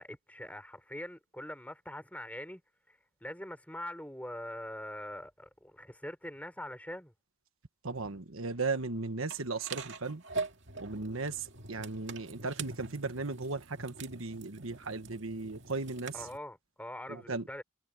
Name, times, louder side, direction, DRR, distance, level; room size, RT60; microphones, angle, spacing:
voice 1, 0.0-2.6 2.9-7.1 16.1-17.6, left 1 dB, 5° left, 4.4 m, -43 dB
voice 2, 7.8-10.2 10.8-16.1 17.1-17.4, right 3 dB, 80° right, 1.4 m, -36 dB
sound 1, 9.3-16.4, right 4 dB, 60° right, 2.2 m, -43 dB
head